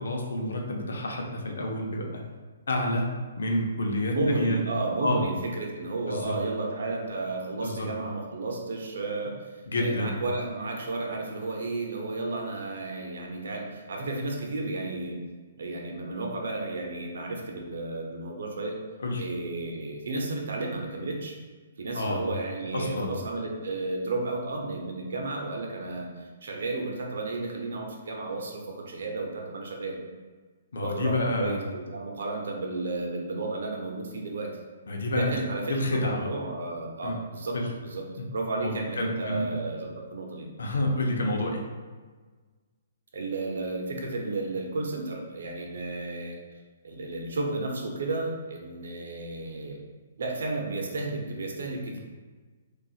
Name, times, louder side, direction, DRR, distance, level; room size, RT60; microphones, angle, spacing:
voice 1, 0.0-2.2 2.7-3.1 3.4-4.6 5.0-5.2 6.1-6.3 7.6-7.9 9.7-10.2 19.0-19.2 21.9-22.3 22.7-23.1 30.7-31.6 34.9-35.4 35.7-36.3 37.0-37.2 37.5-37.7 38.2-38.3 38.6-39.5 40.6-41.6 51.9-52.0, left 1 dB, 80° left, 1 dB, 0.6 m, -29 dB
voice 2, 4.1-9.4 9.8-15.2 15.6-18.7 19.2-21.4 21.8-28.6 28.9-29.9 30.7-34.5 35.1-37.6 37.8-38.1 38.3-40.5 43.1-46.4 46.8-49.8 50.2-52.0, right 2 dB, 75° right, 0 dB, 0.7 m, -32 dB
3.8 x 2.4 x 2.4 m, 1.4 s
hypercardioid pair, 145°, 0 cm